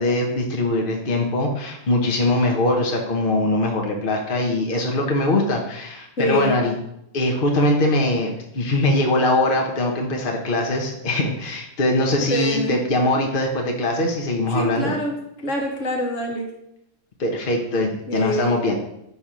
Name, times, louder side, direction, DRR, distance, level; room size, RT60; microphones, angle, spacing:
voice 1, 0.0-6.7 7.1-15.0 17.2-18.8, left 1 dB, 45° left, 1 dB, 1.2 m, -22 dB
voice 2, 6.2-6.6 12.3-12.8 14.5-16.5 18.1-18.6, equal, 75° left, 0 dB, 1.9 m, -25 dB
10.0 x 3.6 x 6.1 m, 0.81 s
omnidirectional pair, 1.3 m